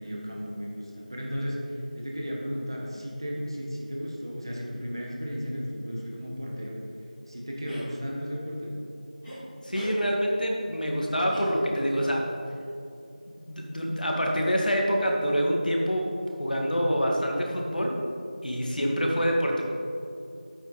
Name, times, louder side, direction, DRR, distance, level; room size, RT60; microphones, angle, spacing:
voice 1, 0.0-6.7 7.3-8.8, equal, 35° right, -2 dB, 1.3 m, -34 dB
sound 1, 7.6-7.9 9.2-9.4 9.7-10.0 11.3-11.9, equal, ahead, 0.6 m, -39 dB
voice 2, 9.6-12.3 13.5-16.1 16.4-18.0 18.4-19.6, equal, 75° left, -1 dB, 2.0 m, -26 dB
8.8 x 8.1 x 4.3 m, 2.6 s
figure-of-eight pair, 180°, 5 cm